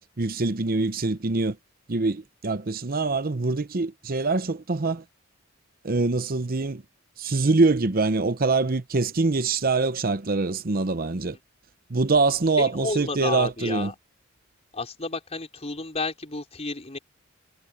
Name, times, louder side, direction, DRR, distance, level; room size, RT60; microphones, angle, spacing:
voice 1, 0.2-1.6 1.9-5.0 5.8-6.8 7.2-11.4 11.9-13.9, right 3 dB, 45° right, 0.9 m, -24 dB
voice 2, 12.6-13.9 14.7-17.0, left 3 dB, 30° left, 5.2 m, -31 dB
head